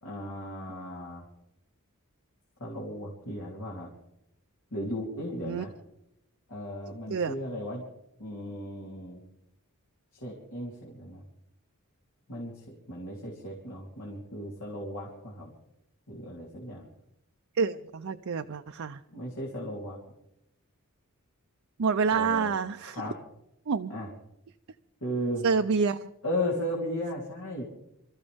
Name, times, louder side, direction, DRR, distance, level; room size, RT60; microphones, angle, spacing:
voice 1, 0.0-1.2 2.6-3.9 4.7-5.7 6.5-7.8 8.2-9.2 10.1-11.2 12.3-15.5 16.1-16.9 19.1-20.0 22.1-22.5 22.9-23.2 23.9-24.1 25.0-25.5 26.2-27.7, equal, 75° left, -3 dB, 3.4 m, -35 dB
voice 2, 17.5-19.0 21.8-23.0 23.7-23.9 25.4-26.1, right 5 dB, 65° right, 7 dB, 0.5 m, -27 dB
27.0 x 14.0 x 3.5 m, 0.84 s
head